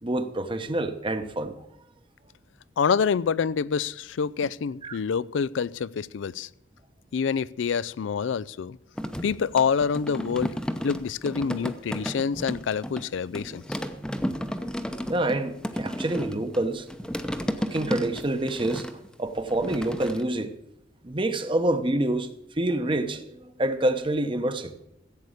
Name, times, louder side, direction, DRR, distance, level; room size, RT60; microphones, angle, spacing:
voice 1, 0.0-1.6 4.8-5.0 15.1-16.9 17.6-18.9 19.2-20.5 21.0-24.7, right 1 dB, 25° right, 0.9 m, -27 dB
voice 2, 2.8-6.5 7.1-8.8 9.2-10.5 10.8-13.6, left 6 dB, 80° left, 0.4 m, -26 dB
sound 1, 9.0-13.1 13.3-20.2, equal, 5° left, 0.7 m, -33 dB
15.0 x 8.4 x 6.5 m
head